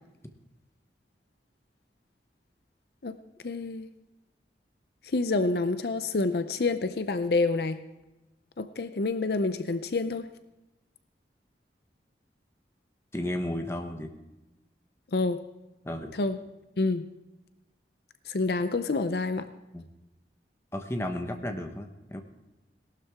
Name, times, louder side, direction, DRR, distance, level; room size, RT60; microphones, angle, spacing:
voice 1, 3.4-3.9 5.1-7.8 8.6-10.3 15.1-15.4 16.2-16.4 16.8-17.0 18.3-19.5, left 3 dB, 65° left, 11 dB, 0.6 m, -27 dB
voice 2, 13.1-14.1 15.8-16.1 19.7-19.8 20.7-22.2, left 1 dB, 15° left, 5 dB, 1.0 m, -33 dB
18.0 x 12.0 x 3.6 m, 0.99 s
head